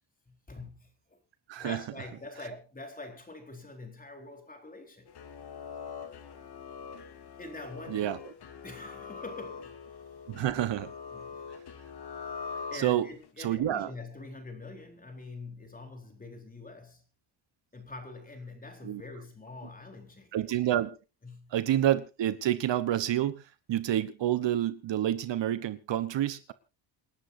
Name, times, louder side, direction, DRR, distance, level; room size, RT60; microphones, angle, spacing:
voice 1, 0.3-1.2 1.6-5.1 7.4-8.1 8.6-9.8 11.1-11.4 12.7-17.0 17.7-20.4 21.2-21.6, left 2 dB, 15° left, 4.1 m, -45 dB
sound 1, 5.1-13.3, left 6 dB, 55° left, 2.5 m, -43 dB
voice 2, 10.3-10.9 12.7-13.1 13.4-13.9 18.8-19.0 20.3-20.9 21.5-23.4 23.7-26.5, right 12 dB, 65° right, 1.2 m, -28 dB
28.0 x 11.5 x 2.7 m
cardioid pair, 130°, 48 cm